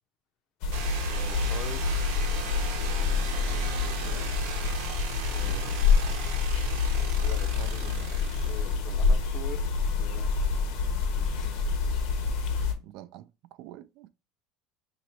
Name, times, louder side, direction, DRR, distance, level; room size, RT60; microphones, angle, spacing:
sound 1, 0.6-12.7, left 5 dB, 70° left, 1.0 m, -27 dB
sound 2, 0.7-9.5, right 6 dB, 85° right, 0.8 m, -38 dB
voice 1, 1.1-2.2 2.9-4.5 5.3-5.9 7.2-7.9 8.4-9.7 9.9-10.3 11.3-11.6 12.4-12.5, left 8 dB, 45° left, 0.6 m, -44 dB
voice 2, 7.6-8.1 12.8-14.1, right 13 dB, 60° right, 0.3 m, -46 dB
3.0 x 2.9 x 4.3 m
cardioid pair, 145°, 0 cm